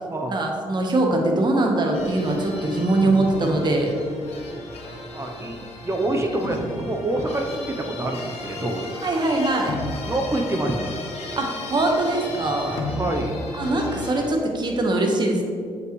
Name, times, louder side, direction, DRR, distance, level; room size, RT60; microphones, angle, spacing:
voice 1, 0.3-3.9 9.0-9.8 11.4-12.8 13.5-15.4, right 2 dB, 45° right, 1 dB, 1.2 m, -22 dB
sound 1, 1.9-14.3, left 2 dB, 80° left, 1.0 m, -34 dB
voice 2, 4.6-8.9 10.0-11.0 12.7-13.4, right 1 dB, 25° right, 3 dB, 0.7 m, -27 dB
7.5 x 5.5 x 3.2 m, 2.2 s
cardioid pair, 75°, 10 cm